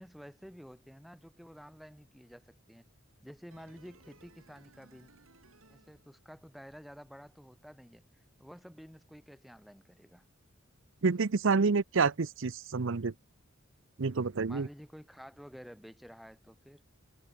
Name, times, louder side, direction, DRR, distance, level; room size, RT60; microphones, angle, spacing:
voice 1, 0.0-2.9 3.2-5.1 5.7-10.3 14.5-16.8, equal, ahead, 6.3 m, -51 dB
sound 1, 3.5-6.6 6.9-7.0, right 2 dB, 85° right, 6.9 m, -61 dB
voice 2, 11.0-13.1 14.0-14.7, right 4 dB, 65° right, 0.7 m, -28 dB
head